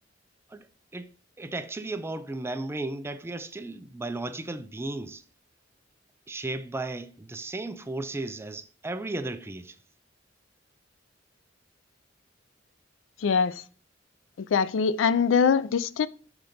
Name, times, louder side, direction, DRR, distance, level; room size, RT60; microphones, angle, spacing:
voice 1, 1.4-5.2 6.3-9.8, right 2 dB, 15° right, 0.4 m, -35 dB
voice 2, 13.2-13.5 14.5-16.1, left 6 dB, 85° left, 0.4 m, -23 dB
6.0 x 3.8 x 5.1 m
head